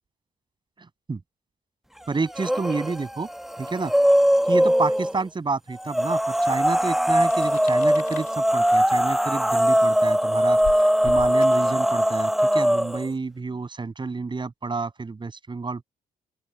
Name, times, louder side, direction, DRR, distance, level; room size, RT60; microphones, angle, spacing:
voice 1, 2.1-3.3 3.6-3.9 4.5-15.8, right 4 dB, 30° right, 7.0 m, -29 dB
sound 1, 2.3-2.9 3.3-5.1 5.9-13.0, equal, ahead, 1.3 m, -21 dB
sound 2, 7.0-12.1, left 12 dB, 80° left, 4.2 m, -42 dB
open air
supercardioid pair, 70°, 15 cm